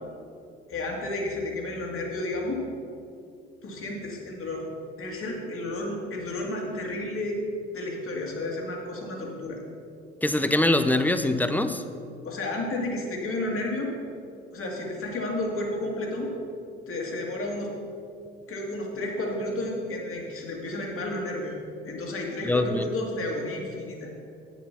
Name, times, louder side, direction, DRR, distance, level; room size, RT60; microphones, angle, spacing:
voice 1, 0.7-2.6 3.6-4.7 5.0-7.4 7.7-9.6 12.2-13.9 14.5-16.3 16.9-17.7 18.5-21.5 21.8-24.1, left 2 dB, 45° left, 0 dB, 2.3 m, -32 dB
voice 2, 10.2-11.8 22.4-22.8, left 1 dB, 5° left, 10 dB, 0.6 m, -23 dB
8.8 x 7.0 x 5.7 m, 2.5 s
hypercardioid pair, 60°, 30 cm